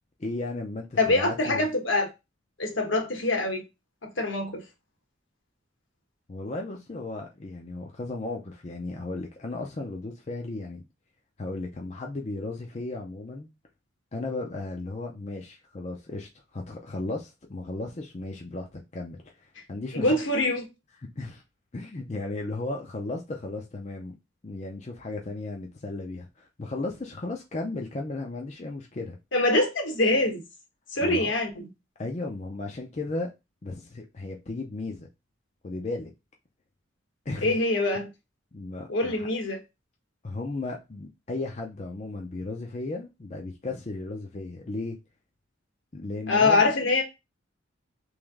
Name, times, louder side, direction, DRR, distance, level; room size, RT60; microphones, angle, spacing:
voice 1, 0.2-1.6 6.3-10.8 11.4-13.5 14.1-20.1 21.2-21.4 21.7-24.1 24.4-29.2 31.0-31.3 32.0-33.3 33.6-35.1 35.6-36.1 37.3-37.5 38.5-39.3 40.2-45.0 45.9-46.7, left 2 dB, 35° left, 0.5 m, -35 dB
voice 2, 1.0-2.1 2.6-3.6 4.0-4.6 19.9-20.7 29.3-30.4 30.9-31.7 37.4-38.1 38.9-39.6 46.3-47.0, left 2 dB, 75° left, 1.1 m, -24 dB
3.2 x 3.0 x 3.5 m
head